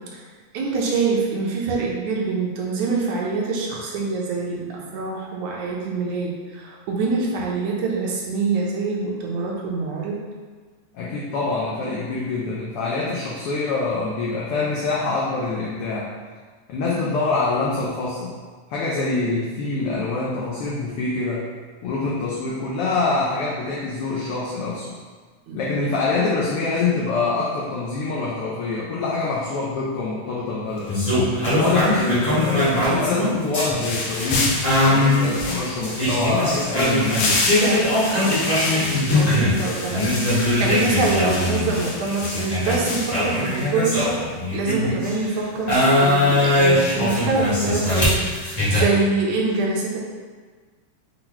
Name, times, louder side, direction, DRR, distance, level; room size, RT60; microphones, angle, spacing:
voice 1, 0.5-10.2 25.5-25.6 31.4-31.6 37.5-44.2 44.5-50.0, right 3 dB, 80° right, -2 dB, 2.0 m, -25 dB
voice 2, 10.9-16.1 16.7-18.4 18.7-21.5 21.8-24.9 25.5-30.9 31.5-37.2, left 3 dB, 90° left, -5 dB, 1.2 m, -25 dB
sound 1, 30.9-39.6 39.9-45.2 45.7-48.8, left 1 dB, 60° left, 0.4 m, -21 dB
sound 2, 33.8-43.7, left 2 dB, 75° left, 2.1 m, -29 dB
5.9 x 2.2 x 3.9 m, 1.5 s
omnidirectional pair, 3.3 m